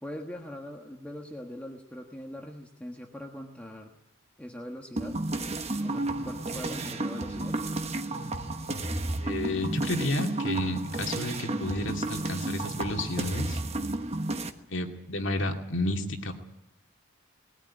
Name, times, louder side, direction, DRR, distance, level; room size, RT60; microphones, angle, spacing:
voice 1, 0.0-4.0 4.4-5.2 5.8-7.6, left 1 dB, 5° left, 1 dB, 1.4 m, -41 dB
sound 1, 5.0-14.5, right 2 dB, 30° right, 1.2 m, -32 dB
voice 2, 9.2-13.6 14.7-16.3, left 2 dB, 60° left, 3 dB, 2.4 m, -31 dB
20.5 x 15.0 x 9.7 m, 0.90 s
head